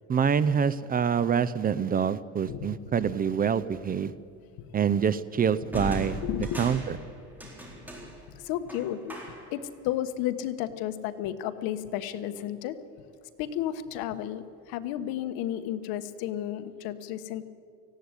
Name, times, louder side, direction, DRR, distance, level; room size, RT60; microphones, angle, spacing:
voice 1, 0.1-4.1 4.7-6.2 6.6-6.8, right 7 dB, 25° right, 15 dB, 0.5 m, -26 dB
voice 2, 2.5-3.2 6.2-6.8 8.3-9.2 9.5-12.8 13.4-17.4, left 11 dB, 80° left, 10 dB, 1.3 m, -33 dB
sound 1, 3.6-3.9 5.7-9.6, equal, 5° right, 4.1 m, -38 dB
18.5 x 15.5 x 9.7 m, 2.4 s
cardioid pair, 140°, 35 cm